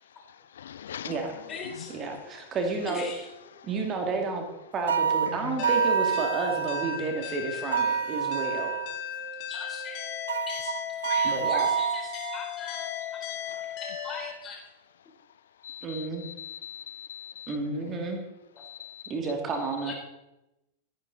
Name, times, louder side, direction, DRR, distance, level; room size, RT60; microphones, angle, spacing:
voice 1, 0.3-1.2 5.3-5.6 13.4-13.8 15.6-18.0 18.6-19.1, left 9 dB, 65° left, 0.4 m, -42 dB
voice 2, 1.3-2.3 2.9-3.3 5.0-6.7 9.5-10.0 10.5-10.7 11.1-13.3 14.0-14.6 18.5-18.6 19.8-19.9, left 5 dB, 25° left, 4.1 m, -42 dB
voice 3, 1.9-3.0 3.6-4.4 4.7-8.7 11.2-11.7 15.8-16.2 17.5-18.2 19.1-19.9, right 3 dB, 30° right, 2.5 m, -31 dB
sound 1, 4.9-7.0 7.7-9.0 10.3-12.5, right 7 dB, 70° right, 0.5 m, -28 dB
sound 2, 5.6-14.3, left 8 dB, 40° left, 1.9 m, -36 dB
16.0 x 10.5 x 4.1 m
figure-of-eight pair, 90°, 0 cm